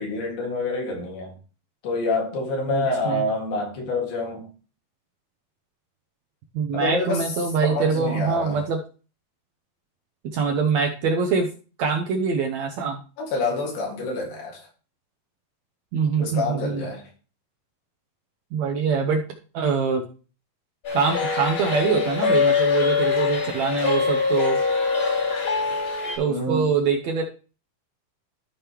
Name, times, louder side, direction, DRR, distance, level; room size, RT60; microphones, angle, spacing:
voice 1, 0.0-1.3 1.8-4.5 6.7-7.2 7.6-8.6 13.2-14.7 16.2-17.1 26.2-26.7, left 2 dB, 80° left, 3.8 m, -27 dB
voice 2, 2.7-3.2 6.5-8.8 10.3-11.5 11.8-13.0 15.9-16.8 18.5-19.2 19.5-20.0 20.9-24.6 26.2-27.2, right 5 dB, 70° right, 1.7 m, -24 dB
sound 1, 20.8-26.2, left 5 dB, 40° left, 2.4 m, -23 dB
14.0 x 5.2 x 3.0 m
omnidirectional pair, 4.1 m